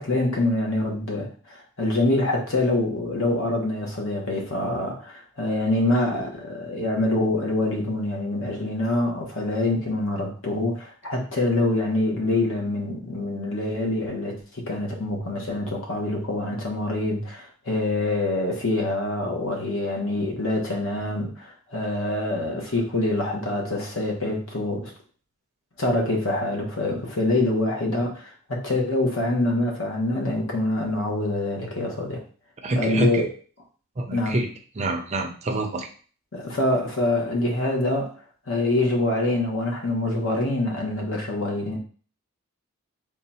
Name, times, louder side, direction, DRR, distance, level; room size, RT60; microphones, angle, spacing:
voice 1, 0.0-24.9 25.8-32.2 32.7-33.2 34.1-34.4 36.3-38.1 38.5-41.8, left 2 dB, 60° left, 0 dB, 1.1 m, -25 dB
voice 2, 32.6-33.3 34.0-34.5 34.8-35.9, right 2 dB, 30° right, 4 dB, 0.5 m, -26 dB
3.7 x 2.4 x 4.2 m, 0.41 s
head